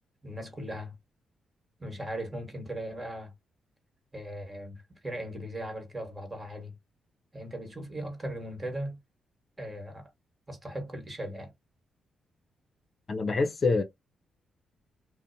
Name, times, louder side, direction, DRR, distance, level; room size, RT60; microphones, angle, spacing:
voice 1, 0.2-1.0 1.8-3.3 4.1-6.7 7.3-9.0 9.6-10.1 10.5-11.5, right 1 dB, 25° right, 1.3 m, -38 dB
voice 2, 13.1-13.8, left 3 dB, 50° left, 0.5 m, -26 dB
2.5 x 2.1 x 2.6 m
supercardioid pair, 55°, 0 cm